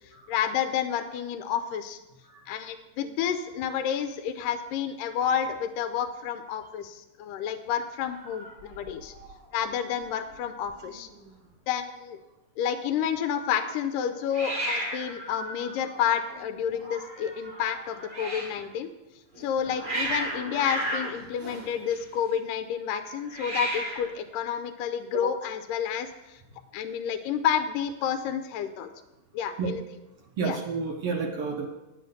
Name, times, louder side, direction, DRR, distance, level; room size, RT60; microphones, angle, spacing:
voice 1, 0.3-2.0 2.5-9.1 9.5-11.1 11.7-12.2 12.6-18.9 19.4-26.4 26.7-28.9 29.3-29.8 30.4-30.6, left 8 dB, 85° left, 9 dB, 2.2 m, -30 dB
Hiss, 8.0-9.3 9.6-10.1 10.3-10.4 10.6-11.3 14.3-18.6 19.3-22.3 23.2-24.2, right 1 dB, 75° right, 0.4 m, -35 dB
voice 2, 30.4-31.6, right 4 dB, 90° right, 1 dB, 1.2 m, -30 dB
10.0 x 8.1 x 6.6 m, 1.0 s
omnidirectional pair, 3.9 m